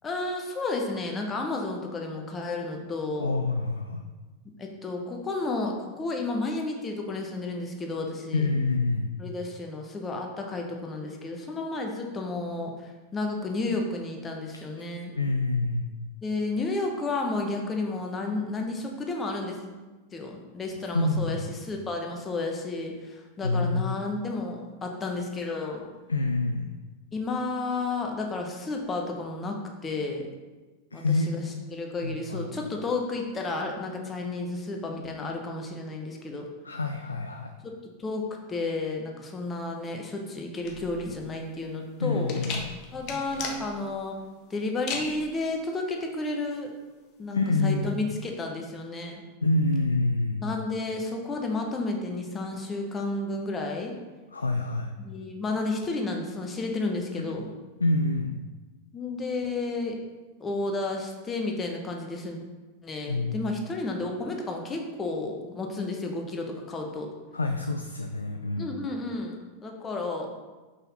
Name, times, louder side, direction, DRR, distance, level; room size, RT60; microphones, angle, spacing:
voice 1, 0.0-3.4 4.6-8.4 9.2-15.1 16.2-19.6 20.1-25.8 27.1-30.3 30.9-31.4 31.7-36.5 37.6-37.7 38.0-42.4 42.9-44.2 44.5-46.7 47.2-49.2 50.4-54.0 55.0-57.5 58.9-60.0 60.4-62.4 62.8-67.1 68.6-70.3, left 3 dB, 20° left, 1 dB, 1.1 m, -32 dB
voice 2, 3.2-4.0 8.3-9.2 14.5-14.6 15.1-15.9 20.9-21.4 23.4-23.8 26.1-26.7 30.9-31.4 32.0-32.7 36.6-37.5 42.0-42.6 47.3-47.9 49.4-50.4 54.3-54.9 57.8-58.4 63.1-63.4 67.3-68.8, left 2 dB, 80° left, 4 dB, 0.4 m, -27 dB
sound 1, 40.6-48.2, left 5 dB, 40° left, 1.0 m, -39 dB
5.7 x 5.6 x 4.2 m, 1.2 s
figure-of-eight pair, 90°, 0 cm